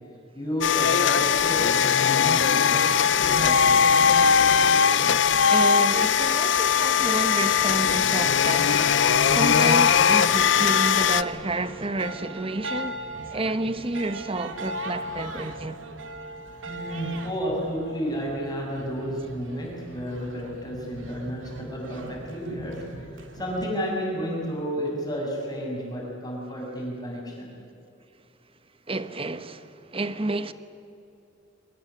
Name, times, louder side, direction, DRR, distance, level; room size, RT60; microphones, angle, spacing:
voice 1, 0.3-4.0 16.7-27.5, equal, 20° left, 7.5 m, -32 dB
sound 1, 0.6-11.2, left 7 dB, 65° left, 0.6 m, -20 dB
voice 2, 5.5-15.8 28.9-30.5, right 2 dB, 30° right, 1.1 m, -30 dB
sound 2, 6.5-23.7, right 1 dB, 90° right, 2.4 m, -39 dB
24.0 x 20.0 x 9.9 m
head